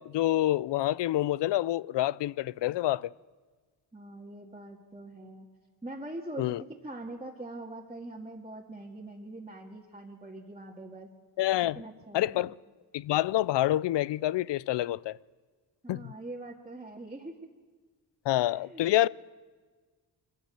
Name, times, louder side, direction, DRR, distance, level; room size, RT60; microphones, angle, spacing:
voice 1, 0.0-3.1 6.4-6.6 11.4-11.8 12.1-12.5 12.9-15.2 15.9-16.1 18.3-19.1, left 14 dB, 85° left, 0.5 m, -27 dB
voice 2, 3.9-5.5 5.8-6.6 6.8-11.1 11.6-12.5 15.8-17.4 18.4-18.9, right 2 dB, 15° right, 2.0 m, -43 dB
23.5 x 14.0 x 9.0 m
cardioid pair, 95°, 41 cm